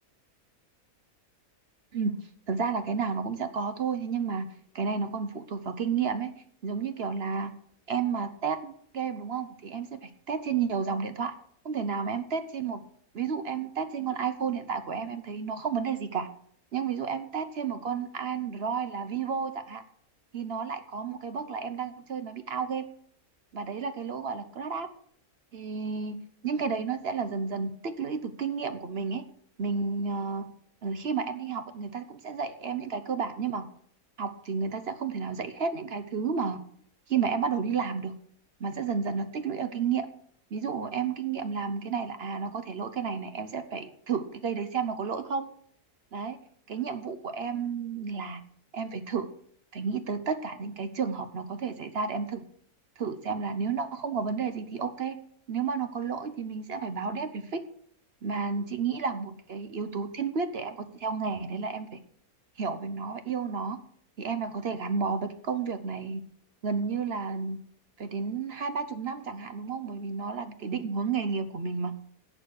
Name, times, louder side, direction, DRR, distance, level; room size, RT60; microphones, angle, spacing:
voice 1, 2.5-4.5 4.7-6.3 6.6-7.5 7.9-11.3 11.6-12.8 13.1-16.3 16.7-19.8 20.3-22.8 23.5-24.9 25.5-26.2 26.4-29.2 29.6-30.5 30.8-33.7 34.2-36.6 37.1-38.1 38.6-40.1 40.5-45.5 46.1-46.4 46.7-48.4 48.7-49.3 49.7-52.4 53.0-55.2 55.5-57.6 58.2-62.0 62.6-63.8 64.2-66.2 66.6-67.6 68.0-71.9, right 5 dB, 50° right, 11 dB, 0.9 m, -31 dB
11.0 x 7.7 x 6.4 m, 0.63 s
omnidirectional pair, 1.6 m